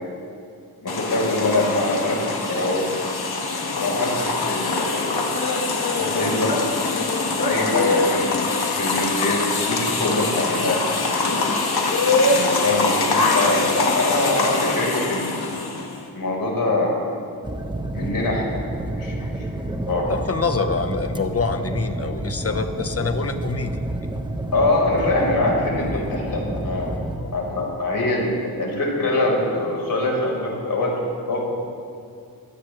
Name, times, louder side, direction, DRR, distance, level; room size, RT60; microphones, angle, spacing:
voice 1, 0.8-2.9 3.7-5.2 6.0-10.8 12.3-15.6 16.1-17.0 17.9-18.6 19.0-20.1 24.5-27.0 27.3-31.0 31.3-31.4, left 2 dB, 65° left, -2 dB, 4.7 m, -24 dB
sound 1, 0.9-16.0, left 3 dB, 80° left, 1.9 m, -23 dB
sound 2, 17.4-27.2, right 1 dB, 10° right, 1.1 m, -30 dB
voice 2, 20.1-23.8 25.8-26.0 27.2-27.4, left 4 dB, 40° left, 7 dB, 1.2 m, -26 dB
22.5 x 17.0 x 3.4 m, 2.3 s
wide cardioid pair, 90°, 37 cm